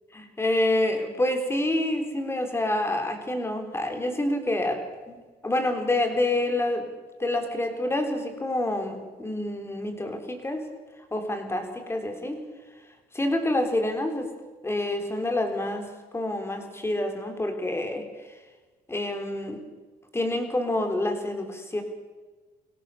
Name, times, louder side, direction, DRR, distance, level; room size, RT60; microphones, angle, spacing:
voice 1, 0.1-5.2 5.4-6.9 7.2-10.7 11.1-12.4 13.1-14.3 14.6-18.0 18.9-19.6 20.1-21.8, left 1 dB, 15° left, 5 dB, 3.8 m, -27 dB
23.5 x 17.0 x 6.7 m, 1.3 s
cardioid pair, 110°, 17 cm